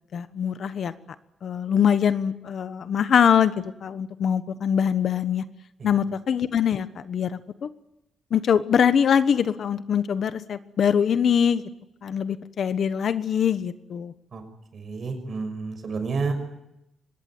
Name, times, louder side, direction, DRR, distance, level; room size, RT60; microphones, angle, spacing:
voice 1, 0.1-0.9 1.4-5.4 5.8-7.7 8.3-11.6 12.0-14.1, left 8 dB, 55° left, 12 dB, 1.2 m, -23 dB
voice 2, 14.7-16.3, right 4 dB, 40° right, 7 dB, 6.2 m, -30 dB
24.5 x 20.5 x 9.6 m, 0.86 s
wide cardioid pair, 150°, 0 cm